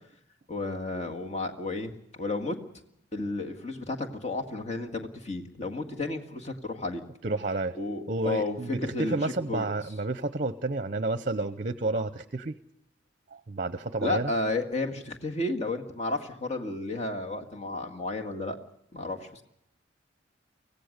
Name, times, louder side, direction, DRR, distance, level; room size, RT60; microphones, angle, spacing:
voice 1, 0.5-2.6 3.1-7.0 7.7-9.7 14.0-18.6 18.9-19.4, left 2 dB, 35° left, 3 dB, 1.9 m, -32 dB
voice 2, 7.2-7.8 8.1-12.5 13.3-14.3, right 2 dB, 45° right, 14 dB, 0.7 m, -30 dB
24.5 x 17.0 x 6.6 m, 0.77 s
head